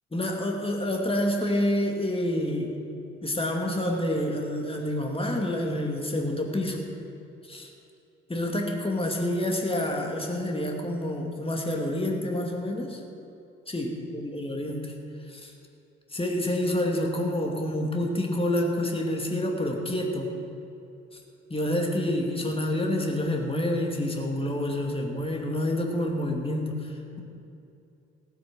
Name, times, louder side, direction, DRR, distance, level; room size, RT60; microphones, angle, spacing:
voice 1, 0.1-2.7 3.2-6.8 7.4-7.7 8.3-13.0 13.7-14.9 15.3-15.5 16.1-20.3 21.1-21.2 21.5-27.2, left 1 dB, 15° left, 1 dB, 2.4 m, -28 dB
15.5 x 8.7 x 6.1 m, 2.8 s
figure-of-eight pair, 45°, 35 cm